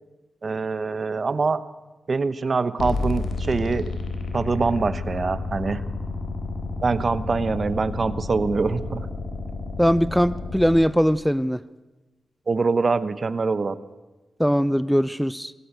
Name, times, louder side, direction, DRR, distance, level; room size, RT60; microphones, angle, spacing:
voice 1, 0.4-1.6 2.1-3.9 4.3-5.8 6.8-9.1 12.5-13.8, right 4 dB, 50° right, 15 dB, 1.0 m, -24 dB
sound 1, 2.8-10.8, left 3 dB, 80° left, 3.5 m, -31 dB
voice 2, 9.8-11.6 14.4-15.5, equal, ahead, 16 dB, 0.6 m, -20 dB
21.5 x 15.5 x 8.2 m, 1.2 s
cardioid pair, 55°, 0 cm